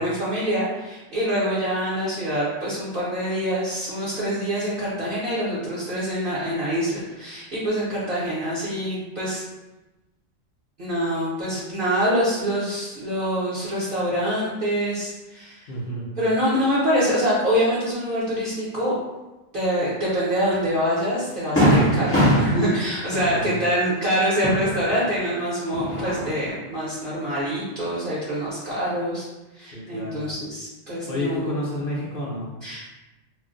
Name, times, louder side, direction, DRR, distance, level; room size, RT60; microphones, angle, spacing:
voice 1, 0.0-9.4 10.8-15.6 16.2-19.0 19.5-29.3 29.5-31.5 32.6-32.9, equal, 50° right, -9 dB, 0.8 m, -25 dB
voice 2, 15.7-16.1 23.2-23.5 29.7-30.3 31.1-32.5, left 1 dB, 50° left, -6 dB, 0.7 m, -30 dB
Fireworks, 20.5-20.6 21.1-21.2 21.6-25.3 25.6-26.5, equal, 15° left, 0.5 m, -22 dB
2.4 x 2.1 x 3.7 m, 1.1 s
omnidirectional pair, 1.4 m